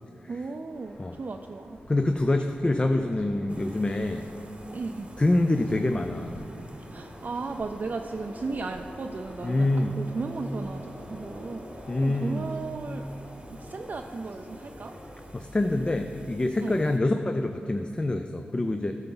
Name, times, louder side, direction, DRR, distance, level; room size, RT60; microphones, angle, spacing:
voice 1, 0.3-1.8 2.4-2.5 4.7-5.1 6.9-13.0 13.5-14.9 16.6-16.8, right 3 dB, 50° right, 4 dB, 0.3 m, -35 dB
sound 1, 0.7-15.3, left 1 dB, 65° left, 1.7 m, -47 dB
voice 2, 1.9-4.3 5.2-6.4 9.4-10.0 11.9-12.4 15.3-18.9, left 2 dB, 30° left, 6 dB, 0.4 m, -26 dB
sound 2, 3.5-17.0, right 1 dB, 30° right, 0.8 m, -49 dB
10.5 x 5.8 x 3.9 m, 2.5 s
cardioid pair, 55°, 4 cm